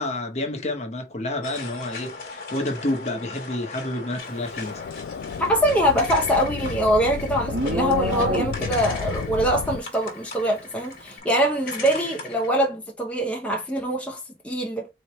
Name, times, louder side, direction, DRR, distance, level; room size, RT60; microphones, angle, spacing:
voice 1, 0.0-4.8, left 1 dB, 40° left, 0.9 m, -29 dB
sound 1, 1.4-12.5, left 4 dB, 55° left, 1.5 m, -38 dB
sound 2, 4.3-9.8, left 6 dB, 75° left, 0.3 m, -32 dB
voice 2, 5.4-14.9, equal, 5° left, 0.7 m, -23 dB
Livestock farm animals working animals, 5.7-8.9, equal, 60° right, 1.1 m, -29 dB
4.2 x 3.0 x 3.0 m
head